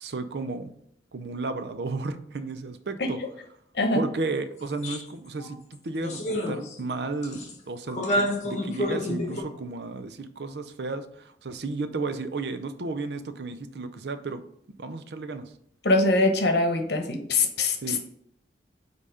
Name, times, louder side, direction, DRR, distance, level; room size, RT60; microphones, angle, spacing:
voice 1, 0.0-0.7 1.1-3.2 3.9-14.4 14.8-15.5 17.8-18.0, right 3 dB, 70° right, 10 dB, 0.6 m, -33 dB
sound 1, 4.8-5.0 5.4-5.5 6.0-6.9 7.2-7.5 7.9-9.4, left 1 dB, 40° left, 1.3 m, -29 dB
voice 2, 15.8-18.0, left 2 dB, 70° left, 4 dB, 1.0 m, -23 dB
5.5 x 4.1 x 4.9 m, 0.70 s
head